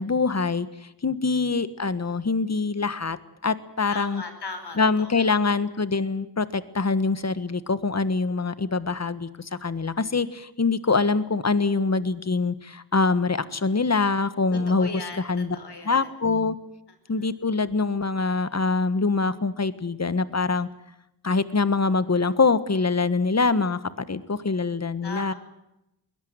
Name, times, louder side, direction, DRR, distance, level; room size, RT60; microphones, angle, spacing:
voice 1, 0.0-3.2 3.4-4.2 4.8-14.9 15.2-15.5 15.8-16.5 17.1-20.7 21.2-25.3, left 4 dB, 40° left, 14 dB, 1.5 m, -24 dB
voice 2, 3.9-5.4 14.5-16.1 25.0-25.3, left 4 dB, 80° left, 8 dB, 5.1 m, -38 dB
21.5 x 17.5 x 9.5 m, 0.87 s
wide cardioid pair, 75°, 39 cm